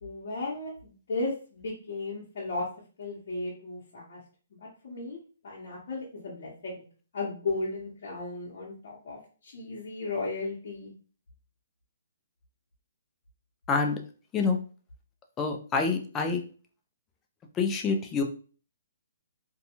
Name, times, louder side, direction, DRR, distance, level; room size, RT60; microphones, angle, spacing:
voice 1, 0.0-2.7 3.0-4.2 4.6-5.2 5.4-6.8 7.1-10.9, left 3 dB, 55° left, -6 dB, 0.8 m, -35 dB
voice 2, 13.7-14.0 14.3-14.6 15.4-16.4 17.5-18.2, left 4 dB, 15° left, 3 dB, 0.3 m, -26 dB
2.6 x 2.2 x 2.7 m, 0.39 s
hypercardioid pair, 165°, 0 cm